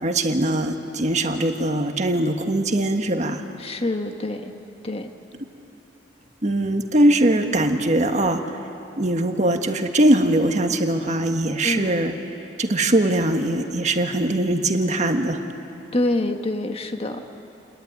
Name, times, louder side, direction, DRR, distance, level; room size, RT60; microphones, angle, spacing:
voice 1, 0.0-3.4 6.4-8.6 9.0-12.2 12.6-15.4, right 1 dB, 40° right, 5 dB, 1.5 m, -21 dB
voice 2, 3.6-4.5 4.8-5.1 11.6-11.9 15.9-17.2, left 2 dB, 30° left, 5 dB, 1.4 m, -26 dB
29.0 x 21.0 x 9.5 m, 2.9 s
head